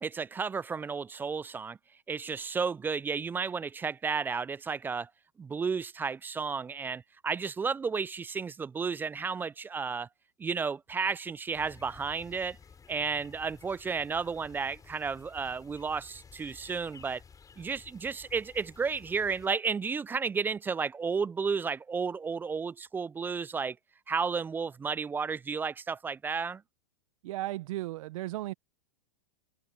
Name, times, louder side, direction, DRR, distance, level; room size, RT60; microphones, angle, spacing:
voice 1, 0.0-1.8 2.1-5.1 5.4-10.1 10.4-12.6 12.9-17.2 17.6-23.8 24.1-26.6, right 5 dB, 10° right, 0.3 m, -32 dB
sound 1, 11.5-19.5, left 6 dB, 20° left, 6.0 m, -54 dB
voice 2, 27.2-28.5, right 16 dB, 60° right, 1.0 m, -35 dB
hypercardioid pair, 110°, 19 cm